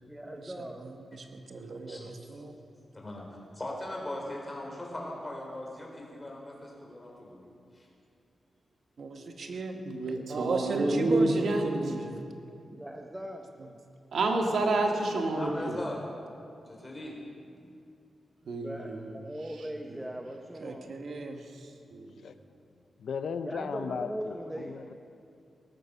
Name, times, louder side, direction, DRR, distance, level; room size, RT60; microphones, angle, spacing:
voice 1, 0.1-0.9 4.6-5.1 12.7-13.5 17.6-17.7 18.4-21.0 23.4-24.8, right 1 dB, 10° right, 3 dB, 1.0 m, -40 dB
voice 2, 1.1-2.5 9.0-9.8 10.3-12.2 20.6-21.4, right 3 dB, 60° right, 4 dB, 1.5 m, -35 dB
voice 3, 2.9-7.9 14.3-14.6 15.3-16.0 16.7-17.2, left 1 dB, 20° left, -1 dB, 3.9 m, -40 dB
voice 4, 9.8-11.7 14.1-15.8 18.5-19.0 21.9-22.1, right 2 dB, 80° right, 2 dB, 2.1 m, -28 dB
voice 5, 23.0-24.9, left 6 dB, 80° left, 10 dB, 0.8 m, -36 dB
18.0 x 13.5 x 5.7 m, 2.5 s
wide cardioid pair, 105°, 0 cm